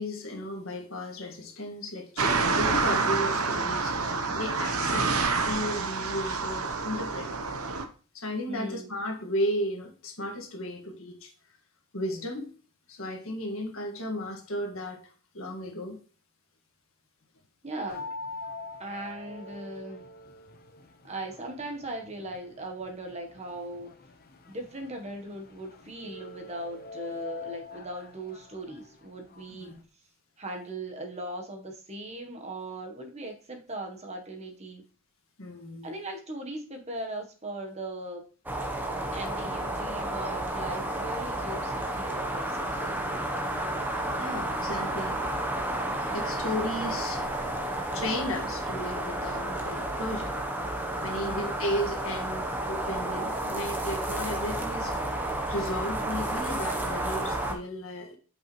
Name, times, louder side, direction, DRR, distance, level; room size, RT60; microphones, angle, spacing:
voice 1, 0.0-4.0 4.3-5.1 5.4-7.3 8.1-11.3 11.9-12.5 12.9-16.0 29.6-29.7 35.4-35.9 44.2-45.2 46.1-47.3 47.9-50.3 51.0-55.1 55.5-58.2, left 1 dB, 60° left, 3 dB, 1.8 m, -34 dB
sound 1, 2.2-7.9, right 4 dB, 75° right, 0.9 m, -28 dB
voice 2, 8.5-8.9 17.6-18.1 18.8-20.0 21.0-23.9 24.5-29.7 30.4-34.8 35.8-38.2 39.1-42.9 51.2-51.6, right 1 dB, 30° right, 3 dB, 1.1 m, -39 dB
sound 2, 17.9-29.8, left 4 dB, 45° left, 0.9 m, -45 dB
sound 3, 38.5-57.6, right 1 dB, 10° right, 0.9 m, -31 dB
8.7 x 5.4 x 3.1 m, 0.38 s
head